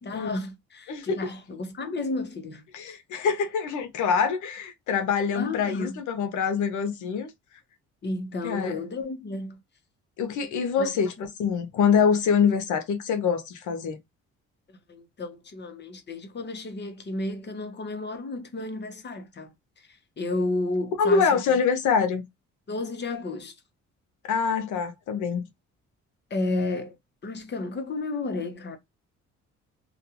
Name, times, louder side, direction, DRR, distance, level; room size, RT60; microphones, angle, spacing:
voice 1, 0.0-2.6 5.3-6.0 8.0-9.6 10.8-10.9 14.9-21.4 22.7-23.5 26.3-27.0 27.2-28.8, left 2 dB, 35° left, 0.9 m, -32 dB
voice 2, 0.9-1.3 2.7-7.3 8.4-8.8 10.2-11.1 11.4-14.0 21.0-22.2 24.2-25.5, left 6 dB, 80° left, 0.7 m, -25 dB
2.5 x 2.3 x 2.8 m
cardioid pair, 90°, 30 cm